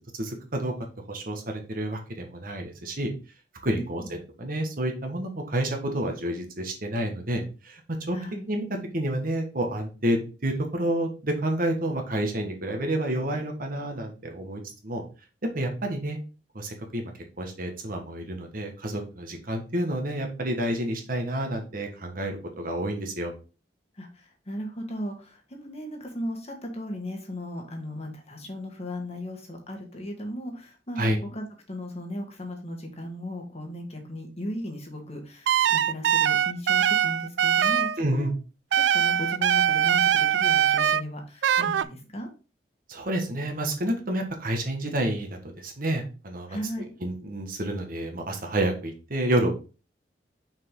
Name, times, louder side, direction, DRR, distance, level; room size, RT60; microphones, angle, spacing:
voice 1, 0.2-0.7 1.1-3.1 3.6-7.8 8.1-8.2 8.5-8.6 8.9-15.0 15.4-16.2 16.5-17.1 17.4-23.3 31.0-31.2 38.0-38.3 42.9-46.6 47.0-49.5, right 1 dB, 55° right, 3 dB, 1.5 m, -29 dB
voice 2, 3.7-4.1 8.1-8.5 24.0-38.3 38.7-42.3 46.5-46.9, left 1 dB, 35° left, 3 dB, 1.6 m, -36 dB
sound 1, 35.5-38.0 38.7-41.0 41.4-41.8, right 9 dB, 85° right, 0.3 m, -22 dB
6.0 x 5.0 x 3.8 m, 0.33 s
head